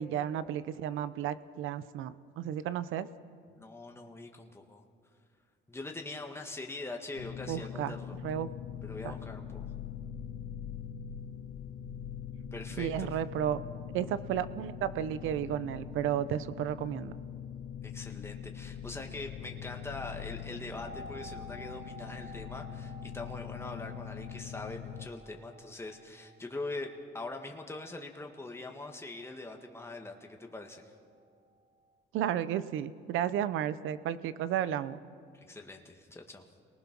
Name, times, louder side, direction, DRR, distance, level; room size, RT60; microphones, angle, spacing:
voice 1, 0.0-3.1 7.5-8.0 8.2-8.5 9.0-9.1 12.8-13.6 13.9-17.1 32.1-35.0, right 10 dB, 90° right, 15 dB, 0.7 m, -33 dB
voice 2, 3.5-4.8 5.7-8.2 8.8-9.7 12.5-13.1 17.8-30.9 35.3-36.4, left 2 dB, 10° left, 2 dB, 1.7 m, -43 dB
sound 1, 7.2-25.1, left 8 dB, 75° left, 1.1 m, -42 dB
sound 2, 20.8-30.6 30.9-31.0, right 1 dB, 45° right, 3.9 m, -53 dB
27.5 x 19.5 x 6.0 m, 2.2 s
cardioid pair, 90°, 20 cm